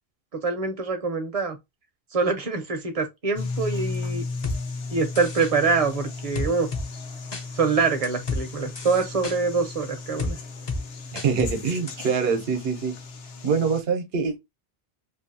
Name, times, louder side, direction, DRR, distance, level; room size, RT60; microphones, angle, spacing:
voice 1, 0.3-1.6 2.1-4.2 4.9-6.7 7.5-10.4, right 4 dB, 40° right, 0.6 m, -25 dB
sound 1, 3.4-13.8, left 3 dB, 80° left, 0.9 m, -35 dB
sound 2, 4.4-4.6 5.2-5.5 6.4-6.9 7.3-7.4 8.0-8.4 8.8-9.4 10.2-10.3 10.7-10.8 11.2-11.5 11.9-12.0, left 3 dB, 35° left, 0.4 m, -29 dB
voice 2, 11.1-13.0 13.4-14.4, right 5 dB, 75° right, 0.9 m, -24 dB
2.6 x 2.6 x 2.5 m
omnidirectional pair, 1.0 m